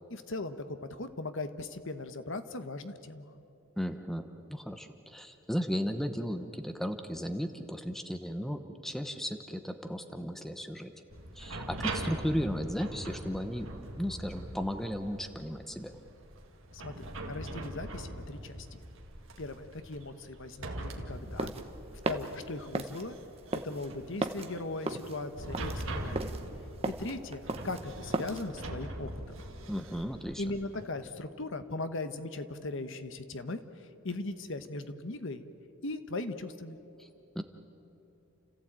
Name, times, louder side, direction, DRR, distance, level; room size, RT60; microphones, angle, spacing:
voice 1, 0.1-3.3 16.7-18.8 19.4-21.5 22.1-23.1 23.5-26.4 26.9-29.4 30.4-35.4 35.8-36.8, left 2 dB, 55° left, 10 dB, 1.1 m, -39 dB
voice 2, 3.8-10.9 11.4-15.9 29.7-30.4 37.0-37.1 37.3-37.4, equal, ahead, 7 dB, 0.9 m, -35 dB
sound 1, 11.1-30.9, right 1 dB, 60° right, 2.3 m, -42 dB
sound 2, 21.1-28.5, right 2 dB, 25° right, 1.0 m, -36 dB
30.0 x 15.0 x 8.8 m, 2.9 s
head